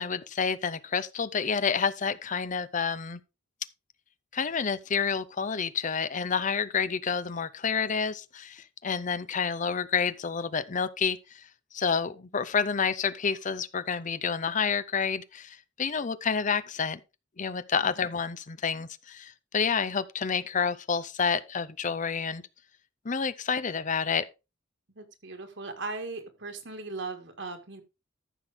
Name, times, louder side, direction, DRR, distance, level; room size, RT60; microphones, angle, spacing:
voice 1, 0.0-3.2 4.3-11.4 11.7-17.0 17.4-22.4 23.0-24.3, left 6 dB, 40° left, 0.6 m, -29 dB
voice 2, 25.0-27.8, right 3 dB, 65° right, 2.0 m, -38 dB
14.0 x 6.1 x 3.5 m
head